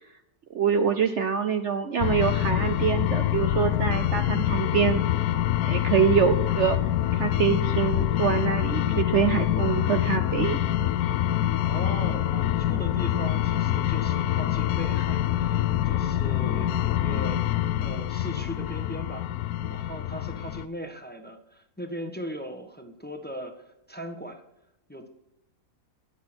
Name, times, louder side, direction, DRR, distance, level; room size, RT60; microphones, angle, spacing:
voice 1, 0.5-5.0 5.6-6.8 7.1-10.6, right 7 dB, 60° right, 8 dB, 0.9 m, -25 dB
sound 1, 2.0-20.6, left 12 dB, 80° left, 1.1 m, -25 dB
voice 2, 11.7-19.3 19.7-24.4 24.9-25.1, right 1 dB, 5° left, 5 dB, 1.2 m, -39 dB
19.5 x 6.7 x 4.4 m, 0.82 s
omnidirectional pair, 1.6 m